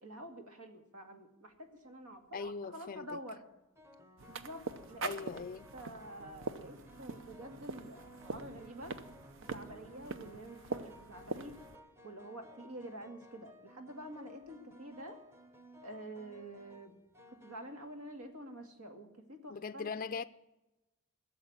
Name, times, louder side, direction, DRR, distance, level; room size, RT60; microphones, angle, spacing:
voice 1, 0.0-3.4 4.3-5.3 5.7-8.9 9.4-11.5 12.0-15.2 15.8-17.0 17.4-19.9, right 1 dB, 75° right, 2.2 m, -48 dB
sound 1, 2.2-2.5 3.8-18.6, equal, 10° right, 1.0 m, -57 dB
voice 2, 2.3-3.1 5.0-5.7 19.5-20.3, left 5 dB, 40° left, 0.4 m, -40 dB
sound 2, 4.2-11.8, right 3 dB, 60° right, 0.8 m, -44 dB
15.5 x 7.4 x 9.7 m
head